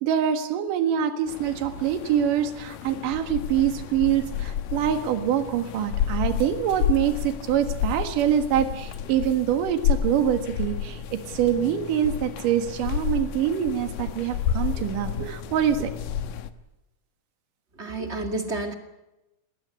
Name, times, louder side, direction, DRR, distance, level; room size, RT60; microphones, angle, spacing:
voice 1, 0.0-15.9, right 9 dB, 75° right, 8 dB, 3.2 m, -25 dB
sound 1, 1.3-16.5, left 9 dB, 85° left, 2.8 m, -31 dB
voice 2, 17.8-18.7, right 2 dB, 25° right, 6 dB, 2.0 m, -30 dB
19.5 x 19.0 x 9.6 m, 0.97 s
omnidirectional pair, 3.8 m